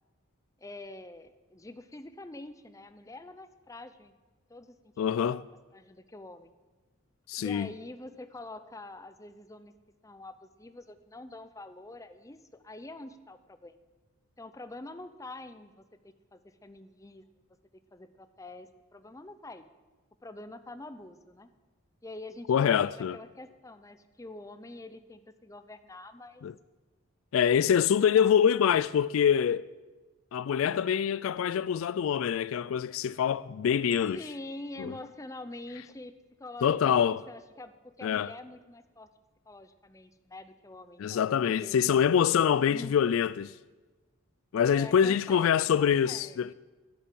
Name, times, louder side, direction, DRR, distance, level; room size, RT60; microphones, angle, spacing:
voice 1, 0.6-4.1 4.5-4.9 5.3-5.4 5.7-6.5 7.4-9.7 10.0-13.7 14.4-17.2 17.9-19.7 20.2-21.5 22.0-22.8 23.1-26.4 28.1-28.6 34.1-36.1 36.4-39.1 39.5-41.8 42.7-42.9 44.7-46.5, left 2 dB, 15° left, 0.6 m, -46 dB
voice 2, 5.0-5.4 7.3-7.7 22.5-23.2 26.4-26.5 27.3-29.7 30.3-34.2 34.8-34.9 36.6-37.2 38.0-38.3 41.0-43.5 44.5-46.5, left 8 dB, 65° left, 0.3 m, -25 dB
sound 1, 33.9-36.1, right 2 dB, 30° right, 3.8 m, -60 dB
12.0 x 10.0 x 7.7 m
head